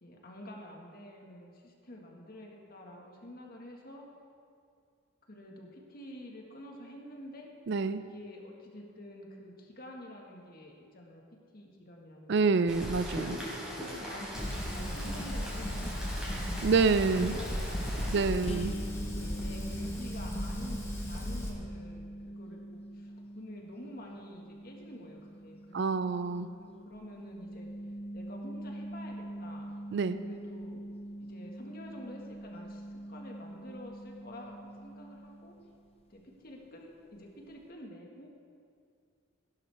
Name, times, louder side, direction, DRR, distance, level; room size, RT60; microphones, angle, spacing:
voice 1, 0.0-4.0 5.3-7.5 8.0-11.2 11.5-12.6 13.2-18.4 19.0-27.7 28.1-29.7 30.2-30.8 31.2-35.5 36.1-38.3, left 1 dB, 45° left, 0 dB, 1.6 m, -49 dB
voice 2, 7.7-8.0 12.3-13.4 16.6-17.3 18.1-18.7 25.7-26.5 29.9-30.2, right 4 dB, 55° right, 12 dB, 0.4 m, -27 dB
Rain, 12.7-18.3, equal, 5° right, 3.2 m, -39 dB
Fire, 14.3-21.5, equal, 15° left, 1.3 m, -36 dB
sound 1, 18.4-35.9, right 1 dB, 30° left, 0.7 m, -44 dB
16.0 x 11.5 x 3.4 m, 2.3 s
head